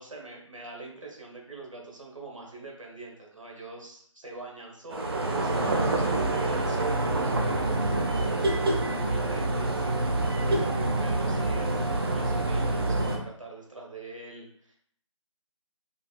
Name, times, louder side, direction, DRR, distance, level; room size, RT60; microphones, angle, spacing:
voice 1, 0.0-14.8, right 3 dB, 80° right, -1 dB, 1.3 m, -44 dB
sound 1, 4.9-13.2, right 2 dB, 50° right, 0.6 m, -26 dB
5.0 x 2.3 x 2.3 m, 0.63 s
figure-of-eight pair, 155°, 16 cm